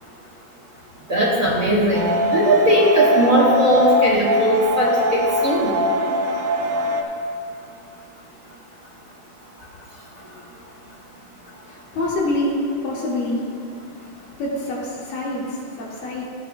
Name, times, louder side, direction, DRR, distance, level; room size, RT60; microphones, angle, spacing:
voice 1, 1.1-5.7, right 1 dB, 35° right, -6 dB, 1.8 m, -18 dB
sound 1, 1.9-7.0, left 1 dB, 70° right, 2.0 m, -22 dB
voice 2, 11.7-13.4 14.4-16.2, left 1 dB, 85° left, -6 dB, 3.8 m, -26 dB
16.0 x 11.5 x 2.3 m, 2.5 s
omnidirectional pair, 3.8 m